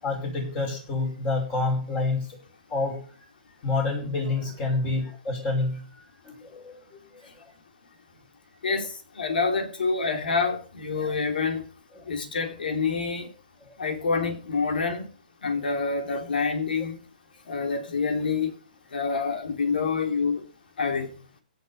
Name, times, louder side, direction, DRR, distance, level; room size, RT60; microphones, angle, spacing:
voice 1, 0.0-2.4 2.7-3.0 3.6-7.4 11.0-11.1 11.9-12.1 13.6-13.7, left 3 dB, 20° left, 5.4 m, -29 dB
voice 2, 9.2-11.6 12.1-13.3 13.8-15.1 15.4-17.0 17.5-18.5 18.9-20.4 20.8-21.1, left 4 dB, 80° left, 3.3 m, -27 dB
16.5 x 6.7 x 5.6 m
hypercardioid pair, 165°, 5 cm